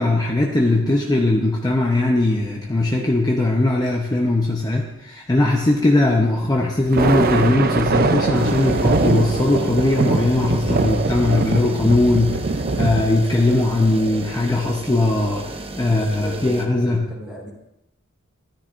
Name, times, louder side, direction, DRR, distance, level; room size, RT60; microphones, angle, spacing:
voice 1, 0.0-17.1, left 2 dB, 20° left, -1 dB, 0.8 m, -19 dB
Thunder, 6.8-13.1, right 3 dB, 45° right, 0.6 m, -22 dB
sound 1, 8.3-16.7, right 2 dB, 25° right, 0.9 m, -34 dB
voice 2, 15.9-17.5, equal, ahead, -9 dB, 2.9 m, -37 dB
13.5 x 13.5 x 2.6 m, 0.89 s
head